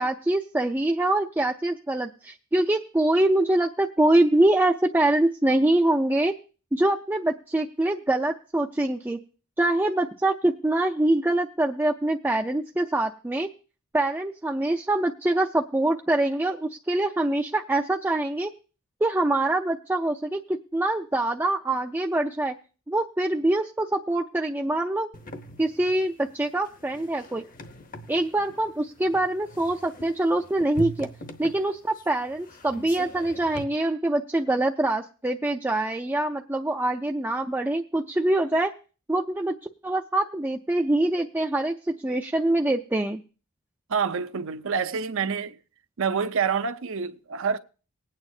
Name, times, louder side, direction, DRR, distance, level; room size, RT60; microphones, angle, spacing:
voice 1, 0.0-6.3 6.7-9.2 9.6-13.5 13.9-18.5 19.0-22.5 22.9-25.1 25.6-27.4 28.1-31.1 31.4-38.7 39.1-39.5 39.8-43.2, right 1 dB, 10° right, 0.4 m, -24 dB
sound 1, 25.1-33.6, equal, 40° left, 0.9 m, -41 dB
voice 2, 43.9-45.6 46.0-47.6, right 6 dB, 65° right, 0.6 m, -27 dB
19.5 x 8.9 x 2.7 m
head